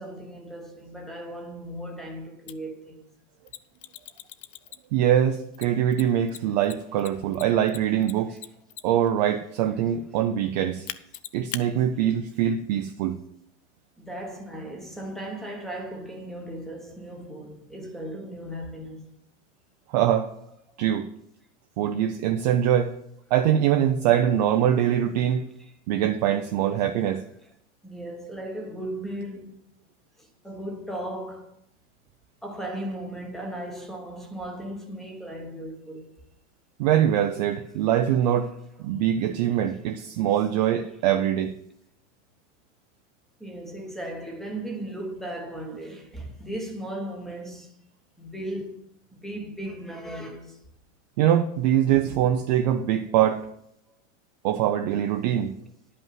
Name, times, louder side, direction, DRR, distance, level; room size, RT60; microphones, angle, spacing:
voice 1, 0.0-3.0 14.0-19.1 27.8-29.6 30.4-31.5 32.4-36.1 43.4-47.7 48.2-48.8 49.1-50.6, right 1 dB, ahead, 0.9 m, -36 dB
Mechanisms, 2.5-2.6 3.5-5.0 5.5-9.1 10.9-11.6, left 14 dB, 45° left, 0.5 m, -39 dB
voice 2, 4.9-8.4 8.8-10.9 11.3-13.2 19.9-20.3 20.8-21.1 21.8-22.9 23.3-25.5 25.9-27.2 36.8-38.5 38.8-41.5 51.2-53.5 54.4-55.5, right 10 dB, 35° right, 0.4 m, -23 dB
11.0 x 5.5 x 7.4 m
supercardioid pair, 170°, 38 cm